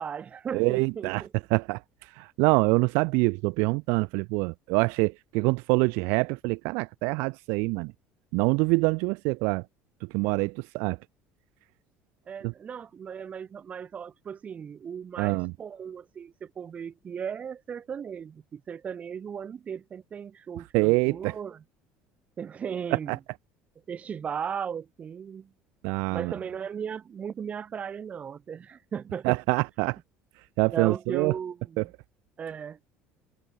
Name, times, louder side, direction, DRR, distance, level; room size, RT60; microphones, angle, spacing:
voice 1, 0.0-1.3 12.3-21.6 22.4-23.2 23.9-25.5 26.1-29.4 30.7-31.9 32.4-32.8, right 7 dB, 35° right, 1.7 m, -36 dB
voice 2, 0.5-1.2 1.5-1.8 2.2-7.9 8.3-9.6 10.1-11.0 15.2-15.5 20.7-21.3 23.1-23.2 25.8-26.3 29.2-30.0 30.6-31.3 31.8-31.9, right 30 dB, 75° right, 0.7 m, -25 dB
supercardioid pair, 105°, 4 cm